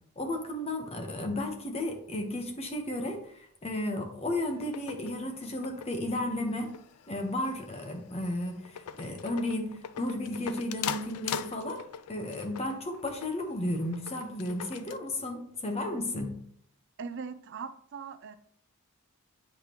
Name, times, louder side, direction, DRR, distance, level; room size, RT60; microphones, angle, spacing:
voice 1, 0.2-6.7 7.1-11.8 12.1-16.4, left 1 dB, 30° left, 4 dB, 1.0 m, -33 dB
sound 1, 4.4-15.0, left 9 dB, 85° left, 0.4 m, -42 dB
voice 2, 17.0-18.4, right 5 dB, 55° right, 12 dB, 0.4 m, -40 dB
8.1 x 5.2 x 3.0 m, 0.64 s
head